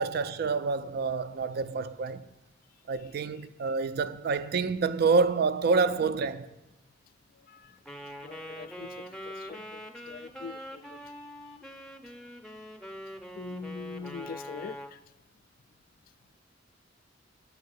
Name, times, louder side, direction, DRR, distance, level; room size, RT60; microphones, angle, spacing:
voice 1, 0.0-2.2 2.9-6.5, right 4 dB, 55° right, 0.4 m, -27 dB
voice 2, 7.4-11.0 13.4-15.0, left 5 dB, 50° left, 0.3 m, -43 dB
Wind instrument woodwind instrument, 7.9-15.0, equal, 5° left, 0.6 m, -43 dB
9.9 x 4.7 x 7.9 m
head